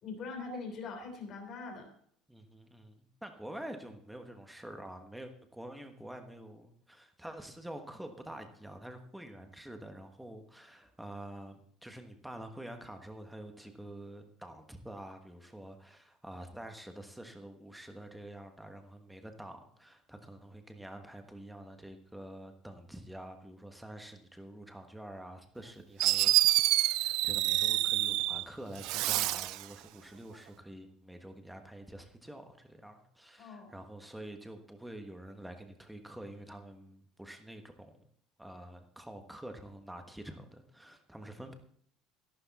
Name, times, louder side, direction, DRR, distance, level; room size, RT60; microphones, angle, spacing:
voice 1, 0.0-1.9 33.4-33.7, left 4 dB, 35° left, 3 dB, 3.4 m, -42 dB
voice 2, 2.3-26.4 26.7-38.0 38.4-41.5, right 1 dB, 5° right, 6 dB, 1.3 m, -47 dB
Fireworks, 25.6-25.7 26.0-28.4 28.8-29.6, right 17 dB, 60° right, 0.4 m, -27 dB
13.0 x 12.0 x 4.1 m, 0.63 s
cardioid pair, 160°, 0 cm